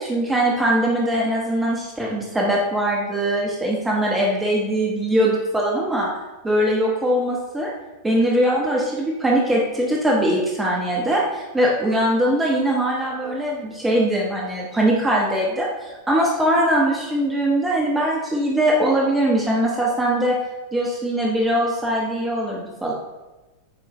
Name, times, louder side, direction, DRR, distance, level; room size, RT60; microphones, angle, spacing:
voice 1, 0.0-6.1 6.4-7.7 8.0-20.4 20.7-22.9, right 1 dB, 10° right, -3 dB, 1.2 m, -21 dB
9.3 x 4.5 x 3.3 m, 1.1 s
figure-of-eight pair, 90°, 0 cm